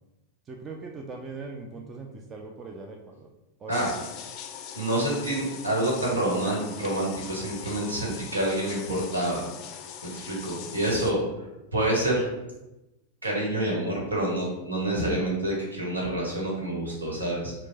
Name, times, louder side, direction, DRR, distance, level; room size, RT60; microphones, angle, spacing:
voice 1, 0.5-3.3 3.6-3.9, right 3 dB, 25° right, 2 dB, 0.4 m, -40 dB
sound 1, 3.7-11.1, left 8 dB, 40° left, 0.4 m, -41 dB
voice 2, 4.7-9.4 10.0-11.2 11.7-12.2 13.2-17.5, right 1 dB, 75° right, -3 dB, 1.3 m, -27 dB
4.4 x 2.2 x 3.9 m, 0.97 s
figure-of-eight pair, 90°, 0 cm